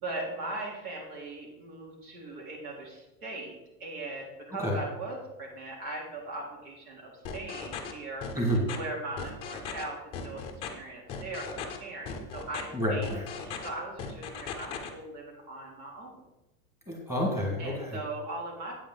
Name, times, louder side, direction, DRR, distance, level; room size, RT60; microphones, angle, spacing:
voice 1, 0.0-8.3 8.7-10.0 10.2-16.2 17.6-18.8, right 2 dB, 75° right, -2 dB, 3.7 m, -39 dB
voice 2, 4.5-4.8 8.3-8.7 12.7-13.2 16.9-18.0, equal, 5° right, -2 dB, 1.8 m, -29 dB
sound 1, 7.2-7.9 8.2-8.8 9.2-9.8 10.1-10.7 11.1-11.8 12.1-12.6 13.0-13.7 14.0-14.9, left 6 dB, 15° left, 0.6 m, -37 dB
8.6 x 8.5 x 3.9 m, 0.96 s
supercardioid pair, 165°, 43 cm